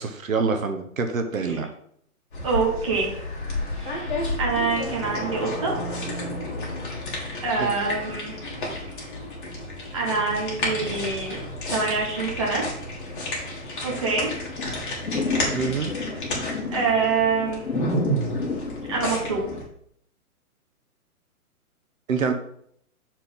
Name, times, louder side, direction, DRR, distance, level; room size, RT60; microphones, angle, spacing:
voice 1, 0.0-1.7 7.6-7.7 15.5-15.9 22.1-22.3, right 5 dB, 60° right, 6 dB, 1.0 m, -26 dB
sound 1, 2.3-19.6, left 1 dB, 35° left, 2.0 m, -31 dB
voice 2, 2.4-3.2 3.8-4.1 4.4-5.7 7.4-8.4 9.0-9.1 9.9-11.4 11.7-12.6 13.8-14.3 16.7-17.6 18.9-19.4, right 4 dB, 20° right, -3 dB, 1.2 m, -25 dB
Thunder / Rain, 12.9-19.6, left 4 dB, 70° left, 1.7 m, -33 dB
6.6 x 4.4 x 5.3 m, 0.66 s
hypercardioid pair, 180°, 45 cm